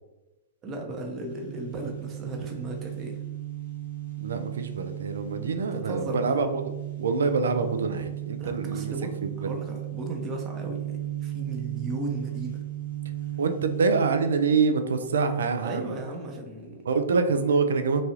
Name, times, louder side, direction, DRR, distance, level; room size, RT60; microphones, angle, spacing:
voice 1, 0.6-3.2 5.9-6.4 8.4-12.6 15.6-16.8, right 2 dB, 30° right, 1 dB, 0.6 m, -36 dB
sound 1, 1.0-15.6, right 14 dB, 80° left, 1.0 m, -36 dB
voice 2, 4.2-6.6 6.9-8.9 9.2-9.5 13.4-16.0 16.8-18.0, right 4 dB, 75° right, 8 dB, 0.3 m, -25 dB
3.0 x 2.3 x 2.8 m, 1.1 s
hypercardioid pair, 115°, 0 cm